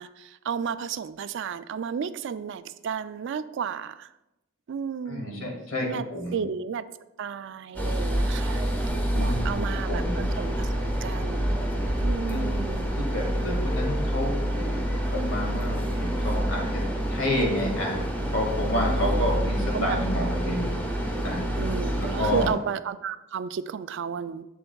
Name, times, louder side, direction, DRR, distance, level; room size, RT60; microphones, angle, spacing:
voice 1, 0.0-4.1 4.7-5.5 5.9-6.1 6.3-6.8 7.2-8.6 9.1-11.6 12.0-12.9 19.0-19.2 19.7-20.0 21.6-24.5, right 7 dB, 65° right, 13 dB, 0.3 m, -33 dB
voice 2, 5.1-6.4 9.1-9.6 9.9-10.2 12.3-12.5 12.9-16.8 17.1-18.0 18.3-20.7 21.2-21.6 22.2-22.5, left 1 dB, 75° left, 0 dB, 2.0 m, -29 dB
sound 1, 7.7-22.5, equal, 10° left, 1.2 m, -27 dB
7.8 x 7.7 x 2.3 m, 0.93 s
head